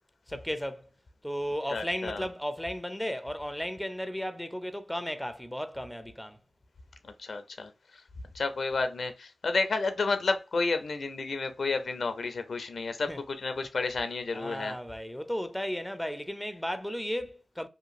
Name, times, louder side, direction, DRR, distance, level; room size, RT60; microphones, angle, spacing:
voice 1, 0.3-0.8 1.2-6.4 13.1-13.2 14.3-17.7, equal, 5° left, 0.4 m, -34 dB
voice 2, 1.7-2.3 7.0-7.7 8.3-14.8, left 3 dB, 65° left, 0.4 m, -31 dB
2.9 x 2.4 x 2.4 m
cardioid pair, 40°, 0 cm